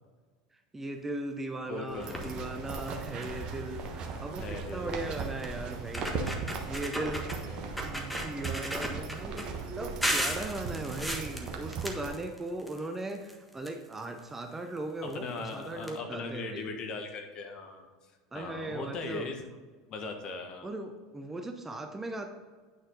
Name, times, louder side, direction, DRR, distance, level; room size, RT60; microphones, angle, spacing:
voice 1, 0.7-6.1 6.7-7.3 7.8-9.5 9.8-16.6 18.3-19.3 20.6-22.3, right 2 dB, 15° right, 5 dB, 0.8 m, -38 dB
voice 2, 1.7-2.3 4.4-4.9 5.2-5.3 7.4-7.9 15.0-17.9 18.3-19.4 19.9-20.7, left 3 dB, 40° left, 4 dB, 1.4 m, -39 dB
sound 1, 1.9-12.1, right 5 dB, 40° right, 1.2 m, -38 dB
sound 2, 2.0-2.4 2.9-3.0 3.2-3.5 4.7-4.8 5.4-5.5 5.8-7.4 7.8-9.4 10.0-12.8 13.1-14.2 15.1-15.2 15.5-15.6 15.8-15.9, equal, ahead, 1.4 m, -35 dB
9.2 x 6.3 x 3.9 m, 1.4 s
figure-of-eight pair, 75°, 2 cm